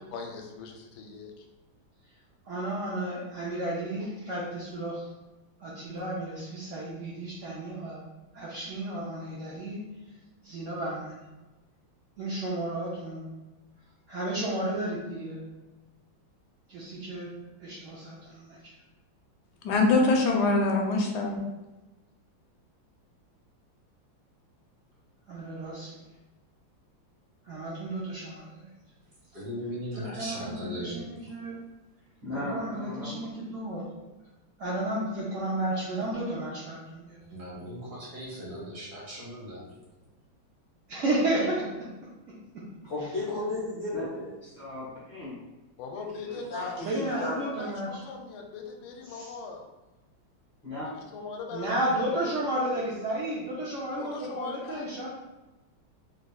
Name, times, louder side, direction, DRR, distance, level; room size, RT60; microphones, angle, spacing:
voice 1, 0.1-1.5 45.8-49.6 51.1-52.2 52.5-52.8 54.0-55.1, left 4 dB, 90° left, 3 dB, 1.4 m, -40 dB
voice 2, 2.4-5.1 5.6-8.0 8.3-9.8 10.4-11.2 12.2-13.3 14.1-15.4 16.7-17.3 17.6-18.7 25.3-26.0 27.4-28.7 29.9-31.6 32.5-34.1 34.6-37.2 40.9-42.7 46.8-48.0 49.1-49.3 51.5-55.1, right 1 dB, 80° right, -6 dB, 0.6 m, -33 dB
voice 3, 19.6-21.4, left 3 dB, 70° left, 1 dB, 1.1 m, -23 dB
voice 4, 29.3-31.1 37.3-39.7, equal, 60° right, -6 dB, 1.4 m, -38 dB
voice 5, 32.2-33.2 43.9-44.1 44.4-45.4 46.2-46.6 50.6-50.9, left 1 dB, 20° left, -11 dB, 0.4 m, -38 dB
voice 6, 42.8-44.3 46.5-47.5, left 2 dB, 50° left, -7 dB, 0.8 m, -33 dB
4.0 x 3.1 x 2.2 m, 1.1 s
omnidirectional pair, 2.1 m